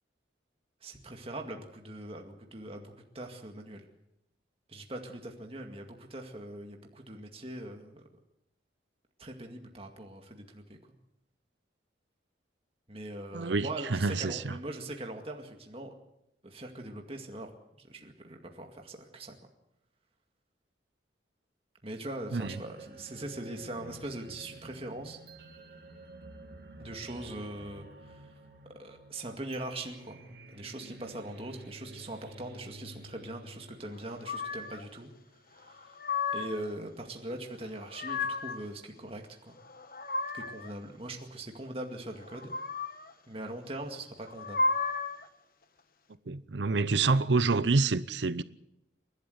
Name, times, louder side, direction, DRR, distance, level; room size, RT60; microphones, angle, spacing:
voice 1, 0.8-3.9 4.7-8.0 9.2-10.8 12.9-15.9 16.4-17.5 17.8-19.3 21.8-25.2 26.8-28.3 28.8-30.2 30.5-35.1 35.5-36.0 36.3-39.6 40.3-42.5 43.3-44.6, right 1 dB, 30° right, 2.1 m, -41 dB
voice 2, 13.3-14.6 22.3-22.6 46.3-48.4, right 3 dB, 75° right, 0.7 m, -27 dB
sound 1, 22.4-35.4, right 2 dB, 55° right, 2.7 m, -51 dB
sound 2, 34.2-34.8 35.7-36.7 37.6-38.6 39.6-40.7 42.2-43.1 44.2-45.3, left 3 dB, 50° left, 1.3 m, -33 dB
29.0 x 12.0 x 8.0 m
head